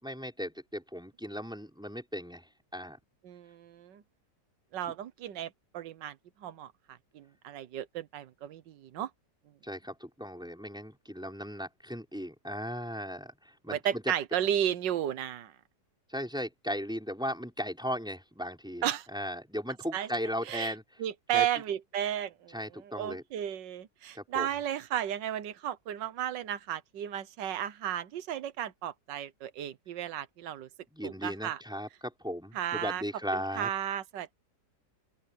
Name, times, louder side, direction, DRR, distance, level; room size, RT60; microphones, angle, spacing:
voice 1, 0.0-3.0 9.6-14.1 16.1-18.9 19.1-20.8 21.3-21.5 22.5-23.2 24.1-24.6 30.9-33.7, equal, ahead, 5.4 m, -37 dB
voice 2, 3.2-4.0 4.7-5.5 5.7-6.1 6.4-6.7 7.1-9.1 13.7-15.5 18.8-19.1 19.9-20.1 20.5-20.7 21.0-22.5 22.9-30.7 31.0-31.6 32.5-33.0 33.3-34.3, right 10 dB, 80° right, 1.7 m, -33 dB
open air
omnidirectional pair, 1.9 m